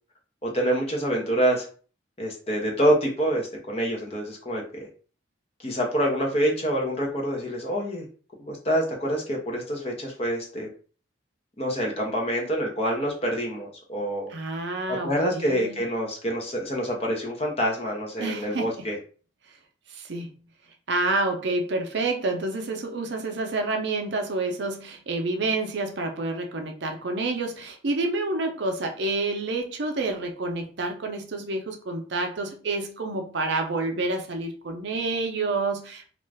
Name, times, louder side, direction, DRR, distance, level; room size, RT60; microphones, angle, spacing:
voice 1, 0.4-1.7 2.2-4.9 5.6-8.1 8.4-10.7 11.6-14.3 14.9-19.0, equal, 30° left, 0 dB, 0.6 m, -26 dB
voice 2, 14.3-15.8 18.2-18.9 19.9-20.3 20.9-36.1, right 2 dB, 60° right, 4 dB, 0.5 m, -28 dB
2.5 x 2.2 x 3.2 m, 0.41 s
head